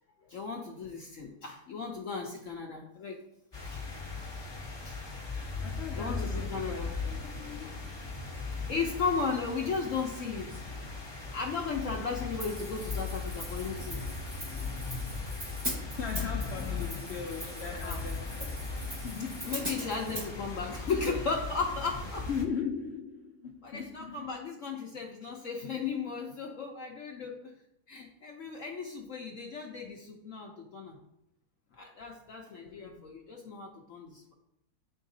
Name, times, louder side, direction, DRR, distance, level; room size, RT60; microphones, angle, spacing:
voice 1, 0.3-3.2 3.6-3.8 4.8-5.0 5.9-6.9 8.7-10.6 11.3-14.0 15.9-16.0 17.6-18.0 19.4-22.3 23.6-27.5 27.9-31.0 31.8-34.3, left 5 dB, 60° left, 0.9 m, -35 dB
sound 1, 3.5-22.4, left 4 dB, 20° left, 0.7 m, -38 dB
voice 2, 5.6-8.0 16.0-18.7 19.0-19.6 22.3-24.3 32.7-33.2, left 6 dB, 80° left, 0.5 m, -39 dB
Hi-hat, 12.4-20.3, right 1 dB, 20° right, 0.9 m, -41 dB
9.9 x 3.8 x 2.7 m
omnidirectional pair, 1.7 m